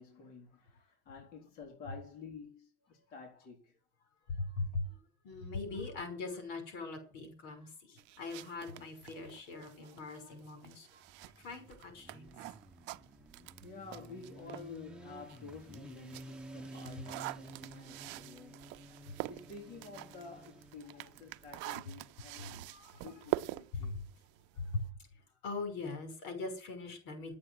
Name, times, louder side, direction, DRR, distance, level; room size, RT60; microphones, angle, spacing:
voice 1, 0.0-3.8 13.4-18.6 19.3-22.6 22.9-24.0, left 4 dB, 55° left, 3.9 m, -50 dB
voice 2, 4.3-5.0 5.2-11.0 11.4-12.3 22.5-23.1 23.7-24.0 24.5-24.9 25.4-27.4, left 3 dB, 90° left, 6.1 m, -41 dB
sound 1, 8.0-14.8 15.2-24.9, right 20 dB, 90° right, 0.6 m, -45 dB
Motorcycle, 11.0-22.7, right 1 dB, 5° right, 1.3 m, -52 dB
11.5 x 8.7 x 8.1 m
cardioid pair, 160°, 18 cm